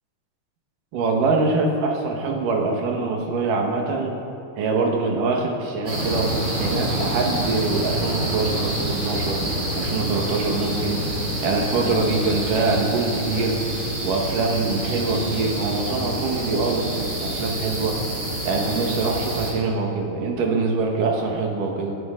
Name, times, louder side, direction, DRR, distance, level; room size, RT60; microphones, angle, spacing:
voice 1, 0.9-4.2 4.6-9.5 9.8-11.0 11.4-13.6 14.0-18.0 18.4-21.9, right 3 dB, 80° right, 1 dB, 3.1 m, -24 dB
sound 1, 5.9-19.5, right 1 dB, 30° right, 3.5 m, -27 dB
20.5 x 12.5 x 3.8 m, 2.7 s
omnidirectional pair, 3.7 m